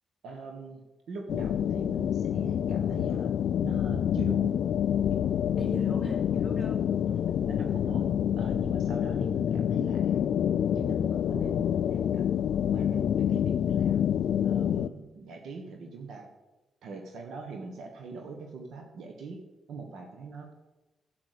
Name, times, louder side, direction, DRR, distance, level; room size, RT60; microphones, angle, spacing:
voice 1, 0.2-4.5 5.1-5.2 5.6-5.8 7.5-8.1 8.4-10.2 10.6-12.2 12.7-14.1 14.4-16.3 16.8-19.4 19.7-20.5, right 4 dB, 80° right, 3 dB, 1.4 m, -42 dB
sound 1, 1.3-14.9, left 9 dB, 75° left, 0.4 m, -27 dB
voice 2, 5.6-7.3, equal, 25° right, 0 dB, 4.2 m, -40 dB
10.5 x 8.3 x 6.8 m, 1.1 s
supercardioid pair, 55°, 0 cm